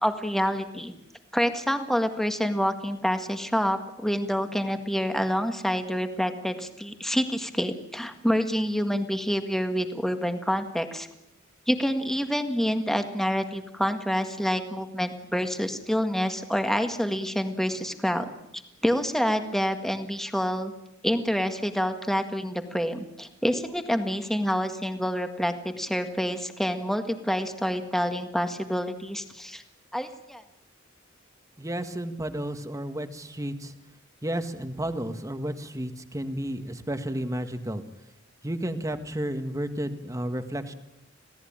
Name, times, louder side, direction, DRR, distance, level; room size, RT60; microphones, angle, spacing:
voice 1, 0.0-0.9 1.3-11.1 11.7-18.3 18.8-20.7 21.0-29.6 29.9-30.4, equal, ahead, 6 dB, 1.8 m, -27 dB
voice 2, 31.6-33.7 34.2-37.8 38.4-40.7, right 1 dB, 15° right, 8 dB, 1.7 m, -32 dB
27.0 x 17.5 x 8.8 m, 0.89 s
head